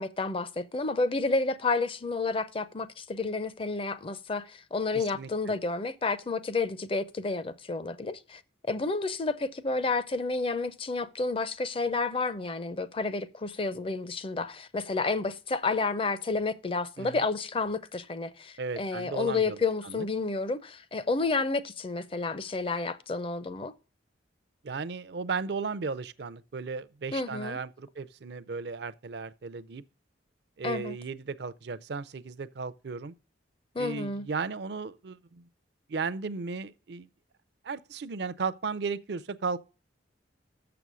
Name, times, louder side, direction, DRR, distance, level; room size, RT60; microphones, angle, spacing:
voice 1, 0.0-8.4 8.7-23.7 27.1-27.6 30.6-31.0 33.7-34.3, left 3 dB, 30° left, 0.5 m, -30 dB
voice 2, 4.9-5.3 17.0-17.2 18.6-19.6 19.8-20.1 24.6-29.8 30.6-33.1 33.8-35.4 35.9-37.1 37.6-39.6, right 4 dB, 60° right, 0.5 m, -35 dB
6.9 x 6.8 x 6.1 m
head